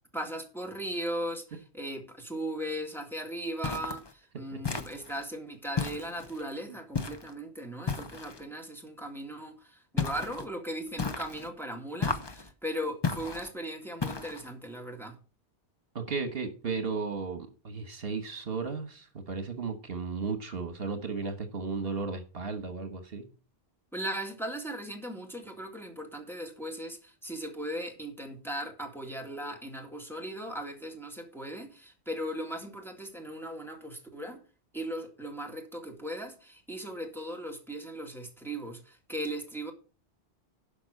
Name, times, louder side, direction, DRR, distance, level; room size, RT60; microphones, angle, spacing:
voice 1, 0.1-15.2 23.9-34.4 34.7-39.7, right 1 dB, ahead, 2.1 m, -38 dB
sound 1, 3.6-4.1 4.6-5.2 5.8-6.4 6.9-7.3 7.9-8.4 10.0-10.5 11.0-11.5 12.0-12.5 13.0-13.5 14.0-14.5, left 5 dB, 25° left, 0.8 m, -33 dB
voice 2, 15.9-23.3, right 4 dB, 65° right, 1.5 m, -35 dB
11.5 x 5.3 x 6.4 m
omnidirectional pair, 1.1 m